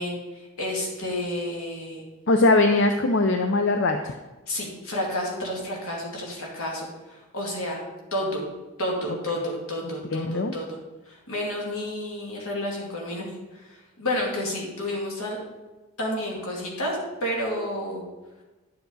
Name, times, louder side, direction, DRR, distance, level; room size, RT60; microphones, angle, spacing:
voice 1, 0.0-2.0 4.5-7.8 8.1-8.4 8.8-10.7 11.1-13.2 13.5-15.4 16.0-18.0, left 1 dB, 75° left, -2 dB, 2.5 m, -30 dB
voice 2, 2.3-4.2 10.1-10.5, left 2 dB, 55° left, 6 dB, 0.5 m, -21 dB
10.5 x 6.9 x 4.0 m, 1.2 s
head